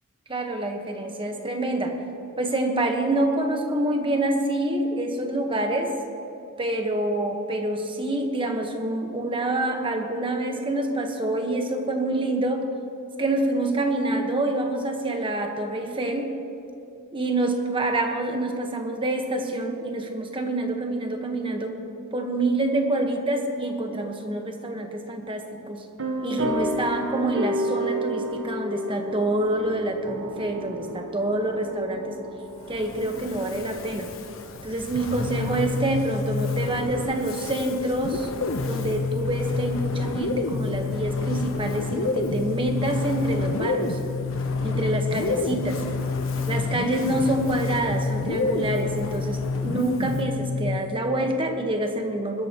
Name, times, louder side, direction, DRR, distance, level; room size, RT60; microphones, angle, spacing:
voice 1, 0.3-2.0 2.4-5.9 6.6-12.7 13.2-16.3 17.1-21.7 22.1-25.8 26.2-32.2 32.7-34.1 34.6-38.3 38.6-44.0 44.6-45.8 46.5-52.5, right 1 dB, 25° right, 4 dB, 1.3 m, -27 dB
sound 1, 26.0-34.1, equal, 65° right, 1.3 m, -32 dB
Fire, 32.5-50.4, left 2 dB, 65° left, 1.1 m, -38 dB
sound 2, 35.0-37.1 38.0-51.0, left 4 dB, 90° left, 0.9 m, -28 dB
21.0 x 13.0 x 3.0 m, 2.7 s
head